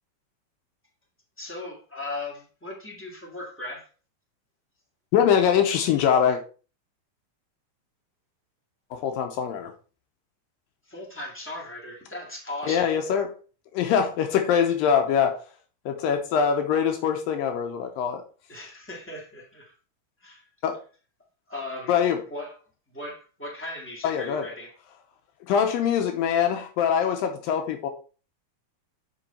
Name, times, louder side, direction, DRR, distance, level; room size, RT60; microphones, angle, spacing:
voice 1, 1.4-3.9 10.9-12.9 18.5-19.7 20.2-20.4 21.5-21.9 22.3-22.6 22.9-24.8, left 2 dB, 10° left, 0.8 m, -37 dB
voice 2, 5.1-6.4 8.9-9.7 12.7-13.3 13.7-15.4 15.9-18.2 20.6-20.8 21.9-22.2 24.0-24.5 25.5-27.9, left 8 dB, 80° left, 2.5 m, -23 dB
6.2 x 5.5 x 4.3 m
omnidirectional pair, 4.1 m